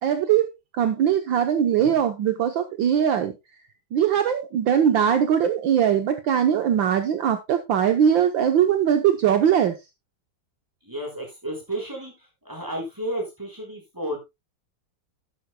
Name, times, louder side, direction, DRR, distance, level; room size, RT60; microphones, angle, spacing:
voice 1, 0.0-3.3 3.9-9.8, right 9 dB, 65° right, 1.6 m, -21 dB
voice 2, 10.8-14.2, right 1 dB, 10° right, 5.6 m, -32 dB
12.5 x 11.5 x 2.3 m
omnidirectional pair, 2.3 m